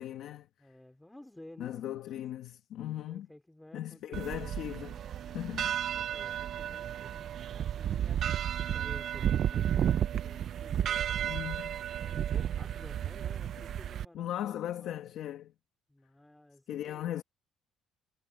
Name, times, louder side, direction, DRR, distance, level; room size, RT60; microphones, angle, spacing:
voice 1, 0.0-0.5 1.6-3.3 3.7-4.9 5.3-5.8 11.2-11.8 14.1-15.5 16.7-17.2, left 12 dB, 55° left, 1.1 m, -38 dB
voice 2, 0.6-2.2 2.9-4.5 5.2-7.2 7.5-11.5 12.2-15.0 15.9-17.2, left 1 dB, 5° left, 2.9 m, -54 dB
sound 1, 4.1-14.0, right 10 dB, 40° right, 0.3 m, -32 dB
cardioid pair, 175°, 0 cm